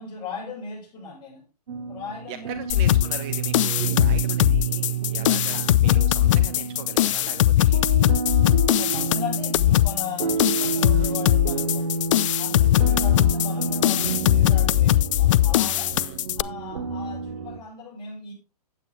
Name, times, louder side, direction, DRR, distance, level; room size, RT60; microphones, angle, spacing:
voice 1, 0.0-1.5 1.9-2.9 5.5-5.6 8.8-12.0 12.4-16.0 16.4-18.3, left 5 dB, 20° left, 5.2 m, -38 dB
sound 1, 1.7-17.6, right 5 dB, 70° right, 1.5 m, -30 dB
voice 2, 2.3-8.2 10.9-11.1 12.6-13.0 15.9-16.2, right 9 dB, 30° right, 0.7 m, -40 dB
sound 2, 2.7-16.4, left 14 dB, 50° left, 0.4 m, -20 dB
8.8 x 8.6 x 3.4 m
hypercardioid pair, 130°, 20 cm